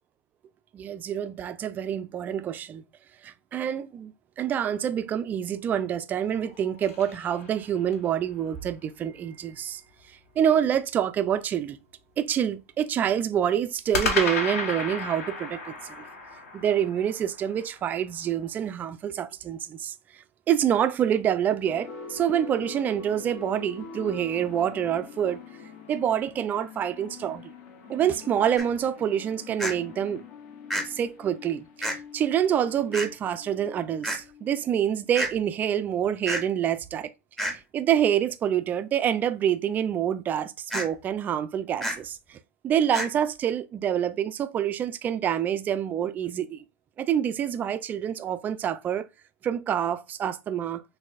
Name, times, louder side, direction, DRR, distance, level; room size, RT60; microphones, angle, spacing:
voice 1, 0.7-2.8 3.2-9.8 10.1-11.8 12.2-16.0 16.5-25.4 25.9-27.5 27.9-30.2 30.8-37.1 37.4-42.4 42.6-46.6 47.0-49.0 49.4-50.8, right 9 dB, 25° right, 0.3 m, -27 dB
sound 1, 6.2-8.1 13.9-18.2, left 3 dB, 85° left, 1.6 m, -33 dB
sound 2, 21.6-35.0, left 6 dB, 50° left, 1.0 m, -44 dB
sound 3, 28.6-28.7 29.6-29.7 30.7-30.8 31.8-32.0 32.9-33.1 34.0-34.2 35.1-35.3 36.3-36.4 37.4-37.6 40.7-40.9 41.8-42.0 42.9-43.1, equal, 5° left, 0.7 m, -29 dB
6.2 x 2.6 x 2.4 m
supercardioid pair, 140°, 8 cm